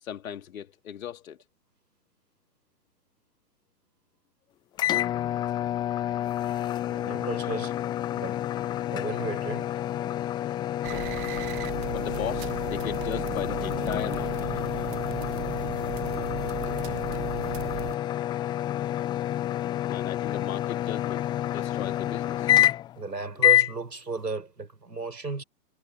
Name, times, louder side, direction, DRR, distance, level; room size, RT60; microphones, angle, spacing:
voice 1, 0.0-1.4 11.9-14.5 19.9-22.5, left 10 dB, 55° left, 3.7 m, -37 dB
sound 1, 4.8-23.0 23.4-23.7, left 13 dB, 10° left, 0.6 m, -28 dB
voice 2, 6.9-7.8 8.1-8.4 8.9-9.8 23.0-25.4, right 4 dB, 85° right, 7.1 m, -34 dB
sound 2, 10.8-18.0, right 22 dB, 35° right, 1.4 m, -36 dB
figure-of-eight pair, 120°, 48 cm